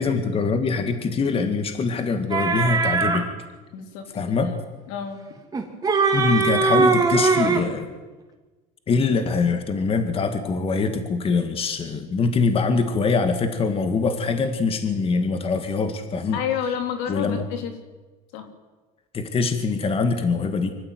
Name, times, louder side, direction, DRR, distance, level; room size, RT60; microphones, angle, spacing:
voice 1, 0.0-3.3 4.1-4.5 6.1-7.9 8.9-16.4 17.1-17.5 19.1-20.7, left 4 dB, 35° left, 7 dB, 2.2 m, -23 dB
sound 1, 2.3-3.2 5.5-7.7, right 4 dB, 20° right, 3.1 m, -20 dB
voice 2, 3.7-4.5 4.9-5.2 16.3-17.7 18.3-18.5, left 8 dB, 80° left, 6 dB, 3.6 m, -30 dB
24.5 x 14.5 x 9.4 m, 1.3 s
cardioid pair, 120°, 18 cm